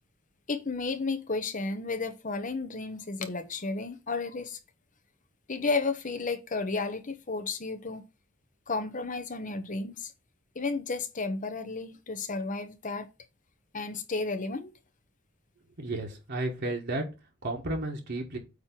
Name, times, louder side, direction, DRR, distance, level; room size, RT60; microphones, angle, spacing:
voice 1, 0.5-4.6 5.5-8.0 8.7-10.1 10.5-13.1 13.7-14.7, left 3 dB, 40° left, 1.0 m, -32 dB
voice 2, 15.8-17.0 17.4-18.4, right 2 dB, 55° right, 1.5 m, -32 dB
8.6 x 3.1 x 6.0 m
head